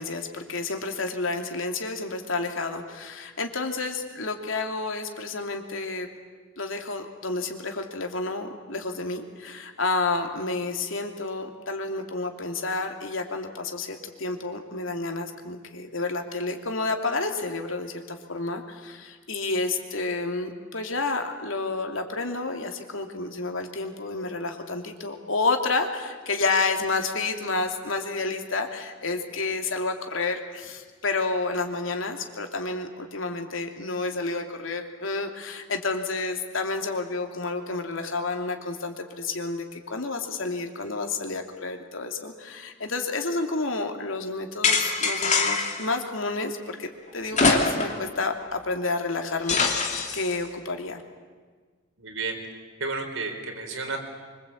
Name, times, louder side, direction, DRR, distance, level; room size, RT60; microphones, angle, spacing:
voice 1, 0.0-6.1 6.6-51.0, left 3 dB, 80° left, 4 dB, 2.8 m, -30 dB
sound 1, 44.6-45.9 47.3-48.1 48.4-48.5 49.5-50.3, left 4 dB, 35° left, 2.7 m, -23 dB
voice 2, 52.0-52.4 52.8-54.0, right 3 dB, 85° right, 3 dB, 4.7 m, -31 dB
25.0 x 24.5 x 8.7 m, 1.5 s
head